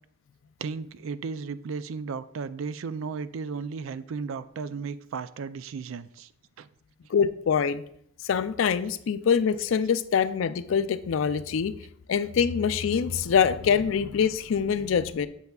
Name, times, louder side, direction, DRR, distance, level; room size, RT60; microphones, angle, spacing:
voice 1, 0.6-6.3 6.6-6.7, right 5 dB, 85° right, 14 dB, 0.4 m, -35 dB
voice 2, 7.1-7.8 8.2-11.7 12.1-15.3, left 7 dB, 80° left, 14 dB, 0.4 m, -24 dB
8.1 x 6.5 x 2.3 m, 0.70 s
head